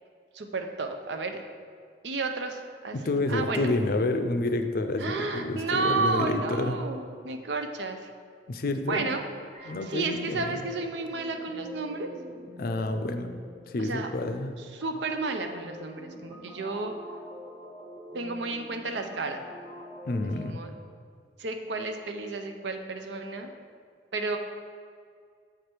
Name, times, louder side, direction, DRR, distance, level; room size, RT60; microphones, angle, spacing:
voice 1, 0.3-1.4 2.0-3.0 3.3-3.7 5.0-8.1 8.8-9.3 9.6-12.1 13.8-14.1 14.6-17.0 18.1-19.4 20.3-20.7 21.4-23.5 24.1-24.4, right 3 dB, 75° right, 6 dB, 0.6 m, -32 dB
voice 2, 2.9-6.8 8.5-9.1 9.7-10.6 12.6-13.4 13.7-14.5 20.0-20.6, left 2 dB, 55° left, 7 dB, 0.5 m, -29 dB
sound 1, 9.5-20.5, left 1 dB, 30° right, 1.4 m, -46 dB
7.3 x 4.9 x 4.5 m, 2.1 s
head